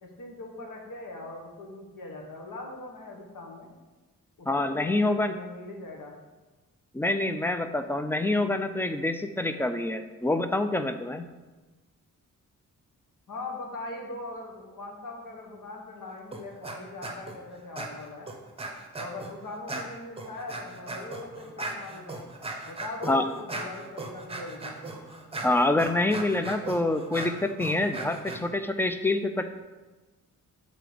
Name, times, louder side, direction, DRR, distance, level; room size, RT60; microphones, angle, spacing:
voice 1, 0.0-3.7 4.4-6.2 13.3-18.3 19.0-22.3 22.7-24.8, left 2 dB, 85° left, 0 dB, 1.3 m, -41 dB
voice 2, 4.5-5.4 6.9-11.3 23.1-23.3 25.4-29.5, left 2 dB, 5° left, 8 dB, 0.3 m, -26 dB
sound 1, 16.3-16.8 17.0-17.4 17.8-19.3 19.7-28.4, right 2 dB, 20° right, 0.8 m, -38 dB
6.5 x 3.8 x 5.0 m, 1.2 s
wide cardioid pair, 125°, 32 cm